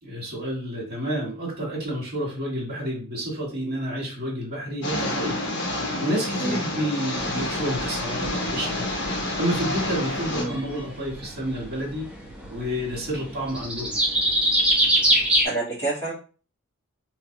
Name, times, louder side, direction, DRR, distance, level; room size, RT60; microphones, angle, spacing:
voice 1, 0.0-8.9 9.4-12.1 12.5-14.0, equal, 45° right, -2 dB, 1.9 m, -30 dB
sound 1, 4.8-10.4, left 1 dB, 50° left, 0.8 m, -29 dB
sound 2, 7.1-15.5, right 1 dB, 5° right, 1.1 m, -26 dB
voice 2, 10.2-10.6 15.4-16.1, right 2 dB, 10° left, -9 dB, 1.6 m, -28 dB
3.2 x 3.1 x 2.9 m, 0.38 s
head